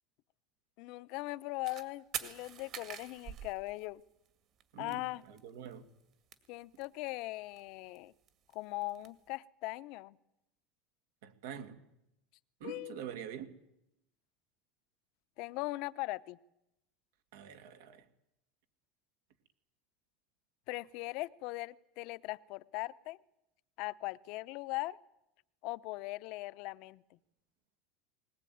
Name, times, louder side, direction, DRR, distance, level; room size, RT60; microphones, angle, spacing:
voice 1, 0.8-4.0 4.8-5.2 6.5-8.1 8.5-10.2 12.6-13.1 15.4-16.4 20.7-23.2 23.8-25.0 25.6-27.2, left 20 dB, 60° left, 14 dB, 0.8 m, -40 dB
sound 1, 1.6-1.8 2.1-4.3 4.6-4.7 4.9-5.0 5.2-5.7 6.0-7.2 7.6-9.1, right 9 dB, 40° right, 2.1 m, -44 dB
voice 2, 4.7-5.8 11.2-11.8 12.6-13.5 17.3-18.0, right 8 dB, 80° right, 8 dB, 2.4 m, -45 dB
20.5 x 19.5 x 9.4 m, 0.85 s
supercardioid pair, 145°, 0 cm